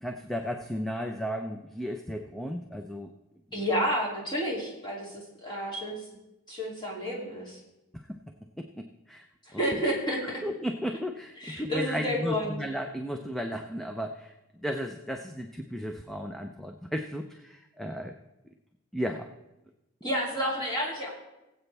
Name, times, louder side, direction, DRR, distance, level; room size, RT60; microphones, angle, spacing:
voice 1, 0.0-3.1 8.1-8.2 8.6-9.3 9.5-9.8 10.4-18.1 18.9-19.3, equal, ahead, 4 dB, 0.4 m, -34 dB
voice 2, 3.5-6.0 6.5-7.6 9.5-10.2 11.4-12.6 20.0-21.1, equal, 20° left, -4 dB, 2.8 m, -30 dB
20.0 x 8.0 x 3.4 m, 0.98 s
head